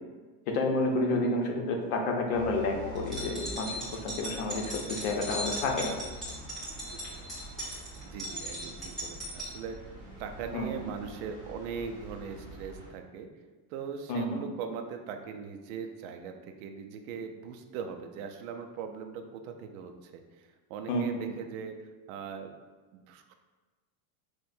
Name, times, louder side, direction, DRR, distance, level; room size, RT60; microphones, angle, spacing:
voice 1, 0.5-5.9 10.5-10.7 14.1-14.4 20.9-21.2, left 2 dB, 65° left, 2 dB, 0.8 m, -30 dB
sound 1, 2.3-12.9, equal, 20° right, 0.9 m, -46 dB
sound 2, 3.0-9.5, equal, ahead, 0.9 m, -38 dB
voice 2, 7.7-9.9 10.2-13.3 13.7-22.5 22.9-23.3, right 6 dB, 65° right, 6 dB, 0.5 m, -40 dB
6.0 x 2.1 x 2.6 m, 1.3 s
cardioid pair, 175°, 45 cm